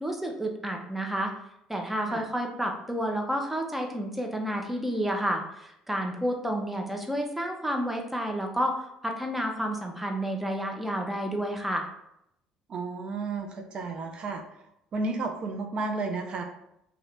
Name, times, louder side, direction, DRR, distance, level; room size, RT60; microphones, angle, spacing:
voice 1, 0.0-1.3 1.7-11.9, equal, 5° right, 3 dB, 0.7 m, -30 dB
voice 2, 12.7-14.4 14.9-16.4, right 3 dB, 50° right, 5 dB, 0.6 m, -32 dB
2.9 x 2.6 x 3.3 m, 0.79 s
supercardioid pair, 85°, 2 cm